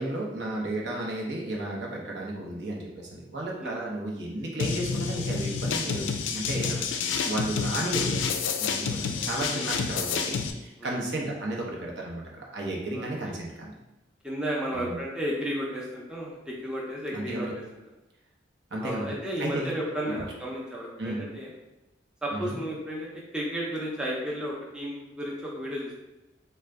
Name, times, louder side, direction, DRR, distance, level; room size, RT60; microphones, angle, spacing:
voice 1, 0.0-6.7 7.2-8.2 8.6-13.7 14.7-15.0 17.1-17.5 18.7-19.8 21.0-21.2 22.3-22.6, right 1 dB, 70° right, -2 dB, 0.8 m, -33 dB
sound 1, 4.6-10.5, left 5 dB, 85° left, 0.3 m, -29 dB
voice 2, 6.5-6.9 7.3-7.4 9.1-9.3 9.6-9.7 10.8-11.0 12.9-13.4 14.2-17.5 18.8-21.5 22.2-23.1 23.3-25.9, equal, 5° right, -4 dB, 0.5 m, -33 dB
3.8 x 2.2 x 3.3 m, 0.98 s
head